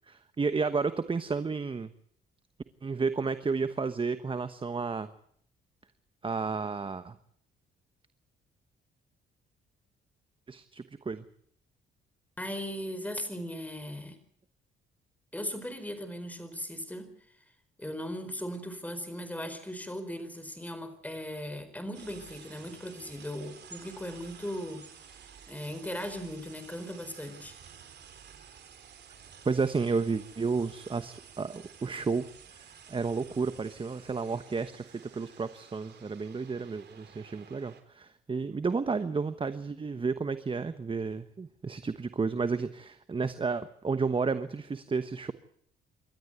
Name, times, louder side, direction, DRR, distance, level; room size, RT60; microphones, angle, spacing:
voice 1, 0.1-1.9 2.8-5.1 6.2-7.1 10.5-11.2 29.4-32.3 32.5-45.3, right 4 dB, 25° right, 11 dB, 1.1 m, -32 dB
voice 2, 12.4-14.2 15.3-17.1 17.8-27.6, equal, 10° left, 10 dB, 4.5 m, -38 dB
sound 1, 21.9-37.8, right 7 dB, 60° right, 3.6 m, -52 dB
27.5 x 13.0 x 8.1 m, 0.66 s
cardioid pair, 90°, 20 cm